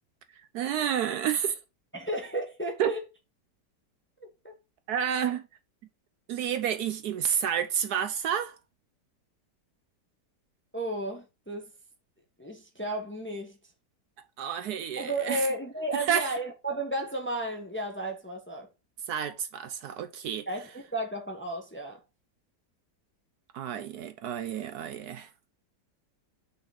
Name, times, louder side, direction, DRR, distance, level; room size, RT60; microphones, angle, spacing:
voice 1, 0.5-1.6 2.8-2.9 4.9-5.5 6.3-8.6 14.4-15.5 15.9-16.3 19.1-20.5 23.5-25.3, right 9 dB, 70° right, 1.1 m, -30 dB
voice 2, 1.9-3.0 4.2-4.6 10.7-11.7 12.4-13.6 15.0-18.7 20.5-22.0, right 1 dB, 10° left, 0.9 m, -33 dB
5.8 x 3.9 x 5.2 m
omnidirectional pair, 1.9 m